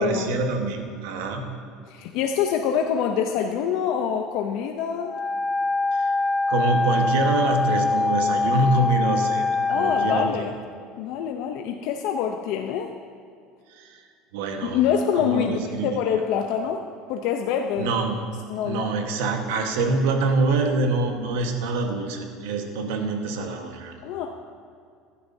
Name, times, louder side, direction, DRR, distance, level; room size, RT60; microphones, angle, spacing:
voice 1, 0.0-1.6 5.9-6.1 6.5-10.4 13.7-14.0 14.3-14.8 15.2-16.0 17.8-18.2 18.6-24.0, right 3 dB, 85° right, 4 dB, 1.3 m, -25 dB
voice 2, 1.9-5.2 9.7-10.5 11.0-12.9 14.6-17.9 18.5-18.9 24.0-24.3, left 8 dB, 65° left, 4 dB, 0.6 m, -25 dB
Wind instrument woodwind instrument, 5.0-10.3, left 3 dB, 10° left, 0.5 m, -23 dB
15.5 x 11.5 x 2.7 m, 2.3 s
supercardioid pair, 130°, 0 cm